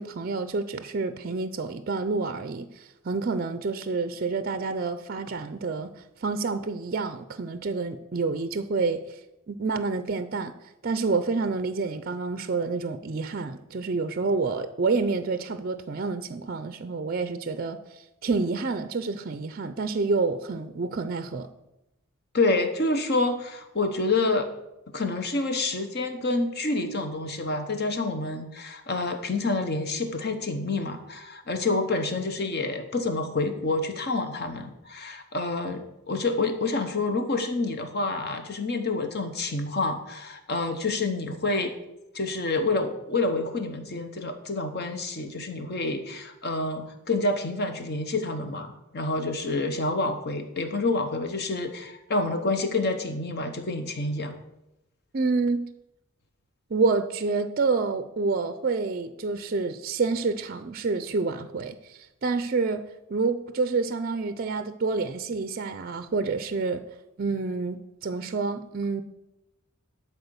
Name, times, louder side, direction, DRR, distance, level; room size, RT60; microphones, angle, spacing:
voice 1, 0.0-5.9 6.2-9.2 9.5-10.5 10.8-21.5 55.1-55.7 56.7-66.8 67.2-69.0, right 4 dB, 45° right, 0.5 m, -28 dB
voice 2, 22.3-24.5 24.9-41.7 42.1-54.4, left 2 dB, 50° left, 1.1 m, -28 dB
12.0 x 4.3 x 7.0 m
head